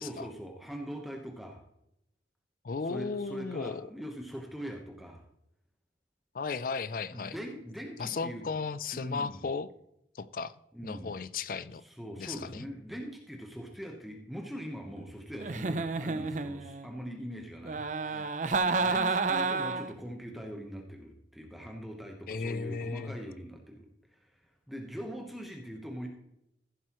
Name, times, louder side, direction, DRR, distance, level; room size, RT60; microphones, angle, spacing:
voice 1, 0.0-1.6 2.9-5.2 7.1-8.5 8.9-9.4 10.7-11.1 11.8-18.4 18.8-26.1, equal, ahead, 1 dB, 1.0 m, -42 dB
voice 2, 2.6-3.9 6.3-7.4 8.0-9.7 10.1-11.8 12.2-12.6 18.1-18.3 22.3-23.2, left 4 dB, 50° left, 17 dB, 0.4 m, -35 dB
Giggle, 15.4-16.9 17.6-20.0, right 4 dB, 45° right, 0.6 m, -30 dB
15.0 x 7.6 x 3.1 m, 0.80 s
head